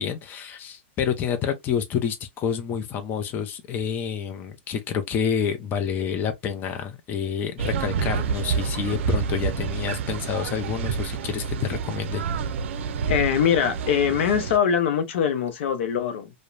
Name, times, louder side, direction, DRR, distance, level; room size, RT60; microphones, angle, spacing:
voice 1, 0.0-12.2, left 7 dB, 30° left, 0.6 m, -28 dB
sound 1, 7.6-14.6, right 6 dB, 75° right, 0.5 m, -28 dB
voice 2, 13.1-16.3, left 8 dB, 70° left, 0.6 m, -22 dB
2.8 x 2.1 x 2.5 m
hypercardioid pair, 135°, 7 cm